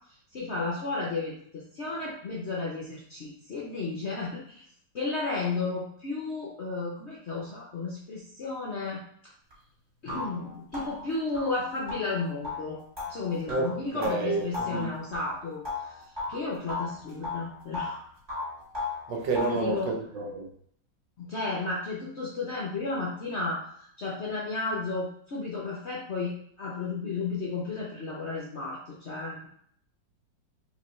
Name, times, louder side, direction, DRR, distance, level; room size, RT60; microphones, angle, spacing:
voice 1, 0.3-4.6 4.9-9.0 10.0-12.8 13.1-16.0 16.3-18.0 19.4-19.9 21.2-23.7 24.0-29.5, left 3 dB, 60° left, -4 dB, 0.7 m, -33 dB
sound 1, 9.5-9.6 10.1-16.4 16.7-18.0 18.3-19.7, left 3 dB, 20° right, 1.8 m, -36 dB
voice 2, 13.9-14.9 19.1-20.5, right 3 dB, 80° right, 1 dB, 1.6 m, -29 dB
4.8 x 3.0 x 3.1 m, 0.64 s
omnidirectional pair, 2.0 m